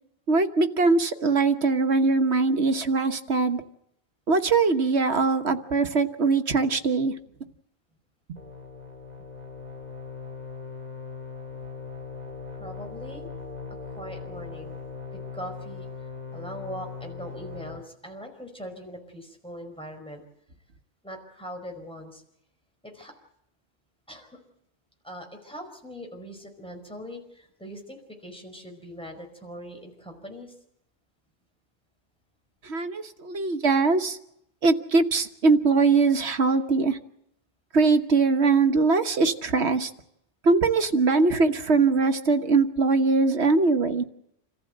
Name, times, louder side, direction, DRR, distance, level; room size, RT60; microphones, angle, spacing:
voice 1, 0.3-3.6 4.3-7.1 8.3-8.4 32.6-34.2 34.6-37.0 37.7-39.9 40.4-44.0, right 4 dB, 75° right, 7 dB, 1.6 m, -22 dB
sound 1, 8.4-17.8, left 5 dB, 40° right, 2.4 m, -39 dB
voice 2, 12.5-13.3 13.9-14.8 15.1-15.9 16.3-20.2 21.0-22.2 22.8-23.1 24.1-24.4 25.0-30.6 43.6-43.7, equal, 5° left, 3 dB, 5.0 m, -41 dB
27.0 x 15.0 x 7.9 m, 0.77 s
omnidirectional pair, 1.1 m